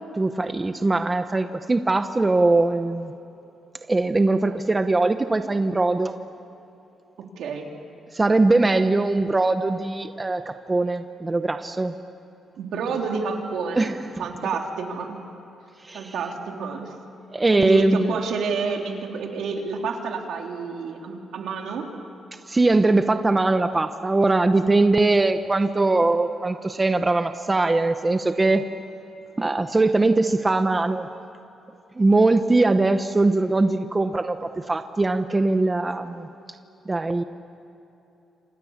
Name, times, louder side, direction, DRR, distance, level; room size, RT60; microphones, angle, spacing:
voice 1, 0.2-3.1 3.9-6.1 8.1-11.9 13.7-14.0 15.9-16.1 17.3-18.1 22.5-28.6 29.4-31.1 32.0-36.3 36.9-37.2, right 2 dB, 20° right, 9 dB, 0.8 m, -21 dB
voice 2, 7.4-7.7 12.6-15.2 15.9-16.8 17.6-21.9, right 5 dB, 80° right, 2 dB, 3.3 m, -29 dB
28.5 x 27.0 x 7.3 m, 2.9 s
cardioid pair, 130°, 0 cm